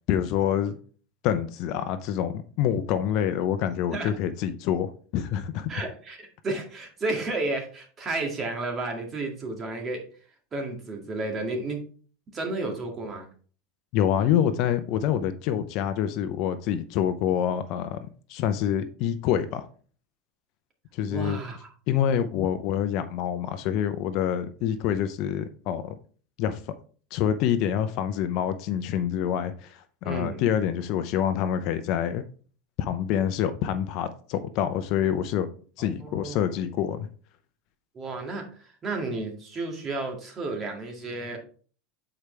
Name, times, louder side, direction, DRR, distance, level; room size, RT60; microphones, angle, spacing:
voice 1, 0.1-0.8 1.2-5.7 13.9-18.0 18.3-19.7 20.9-21.4 21.9-26.0 26.4-26.6 27.1-32.2 32.8-35.5 35.8-37.1, left 9 dB, 55° left, 0.6 m, -26 dB
voice 2, 5.7-10.0 10.5-11.8 12.3-13.3 21.1-21.7 30.0-30.4 35.8-36.4 37.9-41.4, right 2 dB, 25° right, 2.0 m, -32 dB
8.6 x 4.8 x 3.3 m
supercardioid pair, 135°, 0 cm